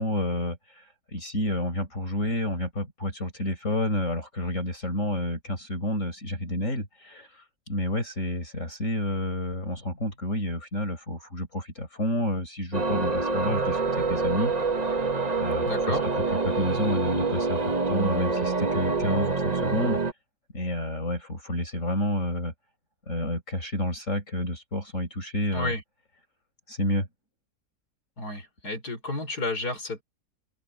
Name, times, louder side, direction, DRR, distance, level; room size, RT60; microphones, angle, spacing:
voice 1, 0.0-14.5 15.3-16.0 16.5-20.0 20.5-22.5 23.1-25.7 26.7-27.1, left 1 dB, 50° left, 5.8 m, -29 dB
sound 1, 12.7-20.1, right 3 dB, 30° right, 1.2 m, -26 dB
voice 2, 15.6-16.1 25.5-25.8 28.2-30.0, left 2 dB, 90° left, 5.9 m, -31 dB
open air
omnidirectional pair, 1.6 m